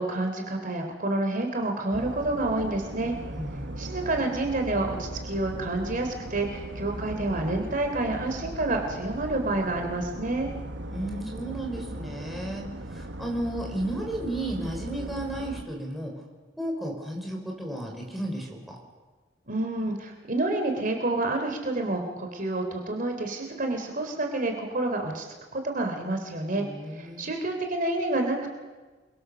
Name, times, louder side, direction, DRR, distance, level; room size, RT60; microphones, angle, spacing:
voice 1, 0.0-3.1 3.8-10.5 19.5-25.3 25.5-26.6 26.9-28.5, right 2 dB, 50° right, 3 dB, 3.2 m, -28 dB
sound 1, 1.9-15.6, right 1 dB, 80° right, 1.4 m, -38 dB
voice 2, 3.3-3.7 10.7-12.6 12.9-16.1 16.6-18.8 26.6-27.3, right 1 dB, ahead, -1 dB, 5.3 m, -33 dB
28.5 x 23.5 x 6.9 m, 1.3 s
head